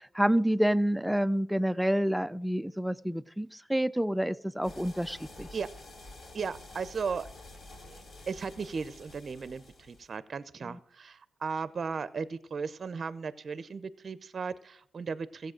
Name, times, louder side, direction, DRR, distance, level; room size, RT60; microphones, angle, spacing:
voice 1, 0.2-5.5 10.6-10.8, equal, 5° right, 16 dB, 0.4 m, -28 dB
sound 1, 4.6-10.1, left 2 dB, 50° left, 3.6 m, -49 dB
voice 2, 6.3-7.3 7.9-15.5, right 5 dB, 45° right, 16 dB, 0.6 m, -36 dB
15.0 x 8.0 x 6.4 m, 0.63 s
cardioid pair, 95°, 0 cm